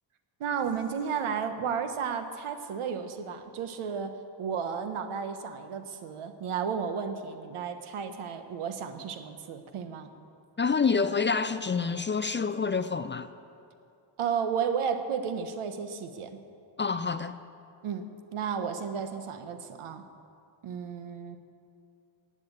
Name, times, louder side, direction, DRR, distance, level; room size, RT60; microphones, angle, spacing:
voice 1, 0.4-10.1 14.2-16.4 17.8-20.0 20.6-21.4, right 7 dB, 90° right, 8 dB, 1.3 m, -33 dB
voice 2, 10.6-13.3 16.8-17.4, left 5 dB, 25° left, 12 dB, 0.4 m, -27 dB
15.5 x 9.0 x 8.7 m, 2.5 s
cardioid pair, 130°, 48 cm